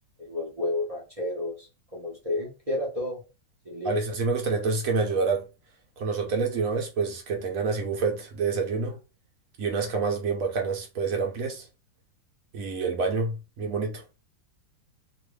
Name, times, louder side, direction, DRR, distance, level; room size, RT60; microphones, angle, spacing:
voice 1, 0.3-1.7 1.9-3.2 3.7-4.0, left 2 dB, 35° right, 0.6 m, -31 dB
voice 2, 3.8-5.4 6.0-9.0 9.6-11.6 12.5-14.0, right 4 dB, 55° right, 1.1 m, -27 dB
2.9 x 2.6 x 3.1 m
omnidirectional pair, 2.0 m